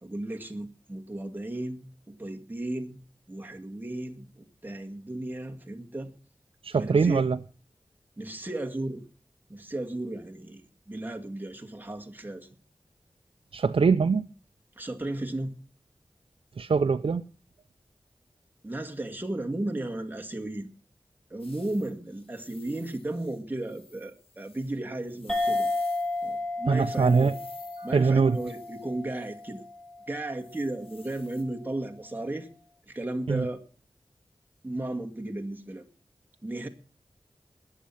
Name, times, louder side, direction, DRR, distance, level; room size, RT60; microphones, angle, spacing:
voice 1, 0.0-3.0 3.3-6.1 6.7-7.2 8.2-9.0 9.5-12.6 14.8-15.6 18.6-20.7 21.3-25.7 26.2-27.3 27.8-29.6 30.1-32.5 32.9-33.6 34.6-35.9 36.4-36.7, right 1 dB, 20° right, 2.1 m, -34 dB
voice 2, 6.6-7.4 13.5-14.3 16.6-17.2 26.7-27.3 27.8-28.4 33.3-33.5, right 5 dB, 75° right, 0.6 m, -23 dB
sound 1, 21.4-26.4 26.7-29.6 30.4-31.4, left 4 dB, 85° left, 2.9 m, -55 dB
sound 2, 25.3-30.2, left 2 dB, 5° left, 2.9 m, -32 dB
20.0 x 7.7 x 5.7 m
wide cardioid pair, 50°, 9 cm